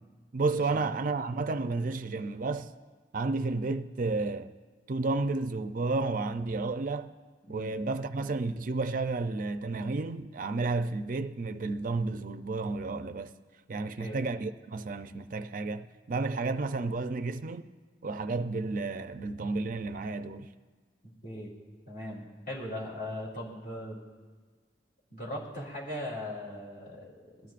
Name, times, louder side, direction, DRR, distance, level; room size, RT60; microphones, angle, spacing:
voice 1, 0.3-2.7 3.1-4.5 4.9-7.1 7.5-13.3 13.7-17.7 18.0-20.5, right 3 dB, 50° right, 0.5 m, -31 dB
voice 2, 7.4-7.7 14.0-14.2 21.2-21.5 21.9-24.0 25.1-27.5, left 1 dB, 50° left, 2.9 m, -39 dB
21.0 x 13.0 x 2.5 m
head